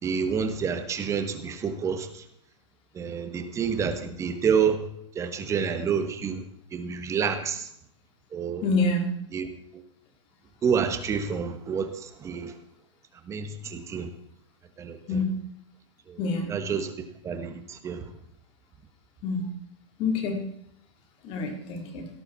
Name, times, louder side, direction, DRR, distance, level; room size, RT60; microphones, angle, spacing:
voice 1, 0.0-2.2 2.9-4.8 5.1-6.4 6.7-7.7 8.3-8.6 9.3-9.8 10.6-12.5 13.3-14.1 14.8-15.2 16.1-16.2 16.5-16.9 17.2-18.0, right 6 dB, 20° right, 8 dB, 1.8 m, -28 dB
voice 2, 8.6-9.1 15.1-15.3 16.2-16.5 19.2-19.5 20.0-20.4 21.2-22.1, left 3 dB, 35° left, 4 dB, 3.9 m, -27 dB
17.5 x 13.0 x 4.4 m, 0.70 s
hypercardioid pair, 145°, 16 cm